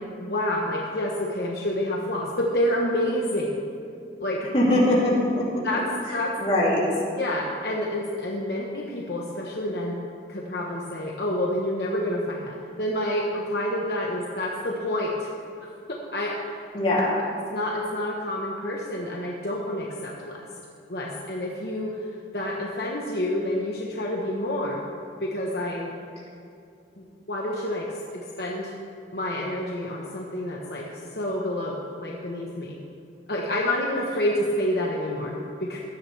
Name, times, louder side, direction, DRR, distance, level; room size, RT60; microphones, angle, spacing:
voice 1, 0.2-3.5 4.2-4.4 5.6-5.8 6.1-6.4 7.2-10.0 10.3-15.3 15.9-16.3 17.5-20.5 20.9-22.1 22.3-24.8 25.2-25.9 27.0-28.7 29.1-32.8 33.3-35.8, left 1 dB, 60° left, -2 dB, 1.2 m, -28 dB
voice 2, 4.5-5.6 6.1-6.8 16.7-17.1, left 1 dB, 35° left, -6 dB, 3.1 m, -22 dB
16.5 x 12.5 x 3.4 m, 2.5 s
head